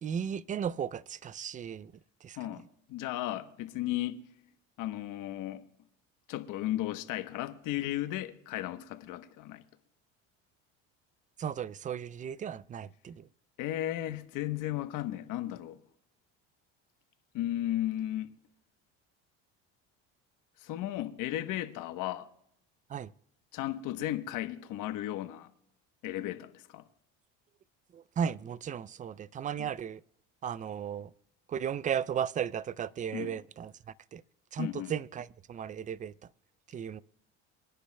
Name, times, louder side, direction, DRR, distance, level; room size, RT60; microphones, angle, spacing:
voice 1, 0.0-1.9 2.2-2.6 11.4-13.3 22.9-23.1 27.9-30.0 30.4-31.1 31.5-34.2 34.5-36.3 36.7-37.0, right 8 dB, 25° right, 0.3 m, -35 dB
voice 2, 2.4-4.2 4.8-5.6 6.3-9.6 13.6-15.8 17.3-18.3 20.6-22.3 23.5-25.5 26.0-26.8 29.6-29.7 33.1-33.3 34.6-34.9, left 14 dB, 65° left, 1.1 m, -35 dB
27.0 x 10.0 x 2.2 m
supercardioid pair, 95°, 34 cm